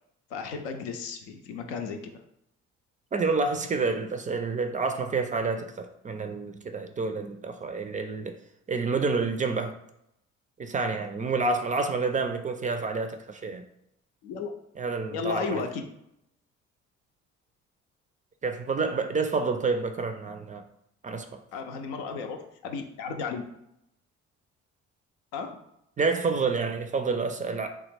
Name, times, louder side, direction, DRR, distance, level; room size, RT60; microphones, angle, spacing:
voice 1, 0.3-2.2 14.2-14.5 15.1-15.8 21.5-23.4 25.3-25.6, left 5 dB, 70° left, 4 dB, 0.6 m, -34 dB
voice 2, 3.1-8.4 8.7-9.7 10.6-13.6 14.8-15.6 18.4-20.6 21.0-21.4 26.0-27.7, right 4 dB, 25° right, 6 dB, 0.4 m, -28 dB
3.1 x 2.3 x 3.3 m, 0.78 s
hypercardioid pair, 50°, 35 cm